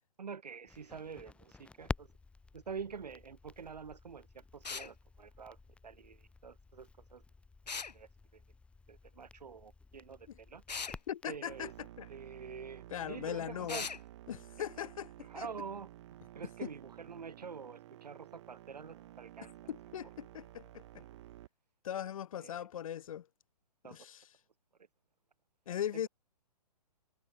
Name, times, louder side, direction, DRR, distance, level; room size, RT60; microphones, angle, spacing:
voice 1, 0.2-2.1 2.5-5.6 5.8-7.2 7.9-8.4 8.9-10.6 11.3-11.7 12.1-13.9 14.8-14.9 15.3-15.9 16.4-19.5 20.9-21.1 22.4-22.6 23.8-24.0 25.9-26.1, right 6 dB, 75° right, 3.5 m, -46 dB
Crackle, 0.7-11.9, left 3 dB, 5° left, 1.7 m, -50 dB
sound 1, 4.6-4.9 7.7-7.9 10.7-11.0 13.7-14.0, left 5 dB, 80° left, 1.9 m, -39 dB
voice 2, 11.1-12.1 12.9-13.8 14.3-15.5 19.7-20.8 21.8-23.3 23.9-24.3 25.7-26.1, left 10 dB, 55° left, 2.7 m, -40 dB
sound 2, 11.5-21.5, right 14 dB, 45° right, 4.2 m, -53 dB
hypercardioid pair, 135°, 21 cm